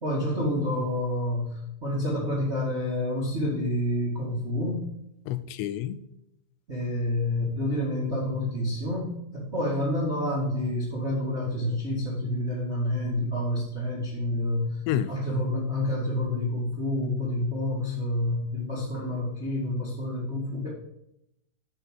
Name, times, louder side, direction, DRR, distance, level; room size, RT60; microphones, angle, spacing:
voice 1, 0.0-4.8 6.7-14.8 15.1-20.7, left 1 dB, 45° right, -5 dB, 0.8 m, -28 dB
voice 2, 5.3-6.0 14.9-15.1, left 11 dB, 85° left, 14 dB, 2.8 m, -29 dB
8.9 x 4.7 x 7.4 m, 0.81 s
omnidirectional pair, 4.9 m